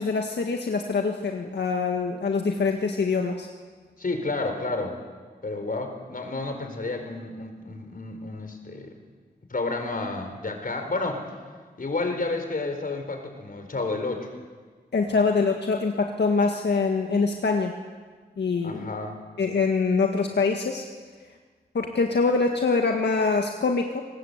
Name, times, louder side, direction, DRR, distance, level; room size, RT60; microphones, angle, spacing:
voice 1, 0.0-3.5 14.9-17.7 18.4-18.9 19.4-20.9 21.7-24.0, left 4 dB, 90° left, 2 dB, 1.9 m, -24 dB
voice 2, 4.0-5.0 5.4-8.9 9.5-11.2 11.8-14.3 15.1-15.2 18.6-19.2, left 3 dB, 55° left, 5 dB, 4.6 m, -31 dB
28.5 x 19.5 x 8.2 m, 1.5 s
wide cardioid pair, 85°, 17 cm